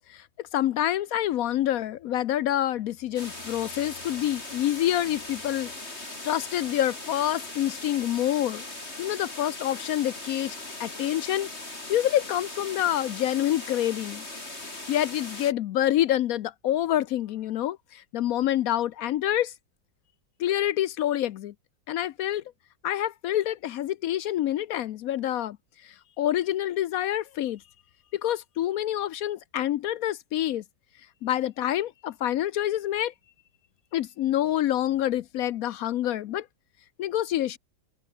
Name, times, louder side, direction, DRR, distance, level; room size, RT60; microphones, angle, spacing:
voice 1, 0.1-5.7 6.2-8.7 9.0-14.3 14.9-19.5 20.4-21.5 21.9-22.4 22.8-25.6 25.8-27.6 28.1-30.6 31.2-33.1 33.9-36.5 37.0-37.6, left 12 dB, 75° left, 0.8 m, -27 dB
sound 1, 3.2-15.5, left 2 dB, 30° left, 4.8 m, -39 dB
open air
omnidirectional pair, 2.1 m